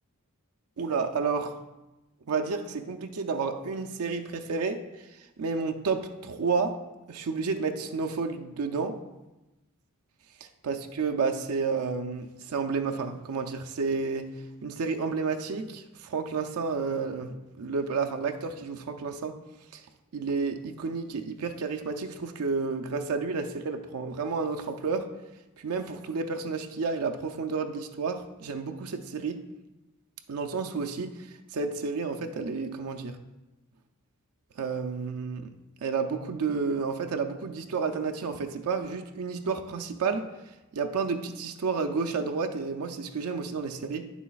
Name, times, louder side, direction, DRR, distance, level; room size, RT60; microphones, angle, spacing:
voice 1, 0.8-1.6 2.3-6.8 7.1-9.0 10.4-14.3 14.6-19.4 19.7-19.8 20.1-25.1 25.6-29.4 30.3-33.2 34.6-35.5 35.8-40.3 40.7-44.1, right 4 dB, 80° right, 0.5 m, -31 dB
9.3 x 7.0 x 2.4 m
head